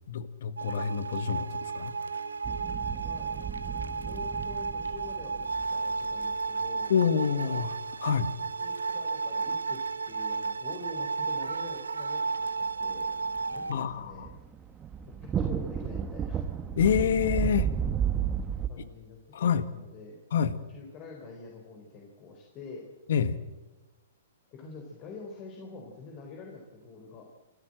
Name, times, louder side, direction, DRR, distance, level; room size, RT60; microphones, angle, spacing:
voice 1, 0.1-1.9 6.9-8.3 13.7-14.3 16.8-17.7 19.3-19.7 20.3-20.5 23.1-23.4, left 7 dB, 65° left, 14 dB, 1.5 m, -27 dB
sound 1, 0.6-13.7, right 4 dB, 90° right, 1.0 m, -33 dB
sound 2, 2.4-6.3 13.3-18.7, right 8 dB, 20° right, 1.3 m, -33 dB
voice 2, 3.0-6.9 8.6-13.1 13.5-14.3 15.2-16.4 18.7-20.2 20.7-22.9 24.5-27.3, left 4 dB, 35° left, 1 dB, 4.1 m, -46 dB
28.0 x 13.5 x 7.8 m, 1.1 s
hypercardioid pair, 120°, 0 cm